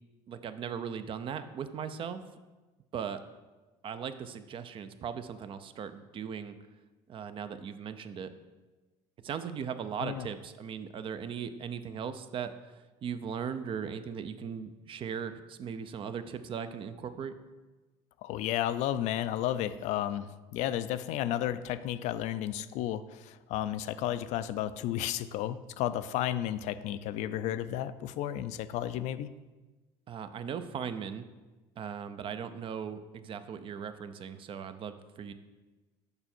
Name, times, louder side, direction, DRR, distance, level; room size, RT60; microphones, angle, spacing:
voice 1, 0.3-2.2 2.9-3.2 3.8-6.6 7.1-8.3 9.2-17.3 30.1-31.2 31.8-35.3, right 7 dB, 45° right, 11 dB, 0.5 m, -38 dB
voice 2, 18.2-29.3, left 12 dB, 70° left, 13 dB, 0.4 m, -33 dB
6.8 x 5.4 x 4.4 m, 1.2 s
supercardioid pair, 95°, 13 cm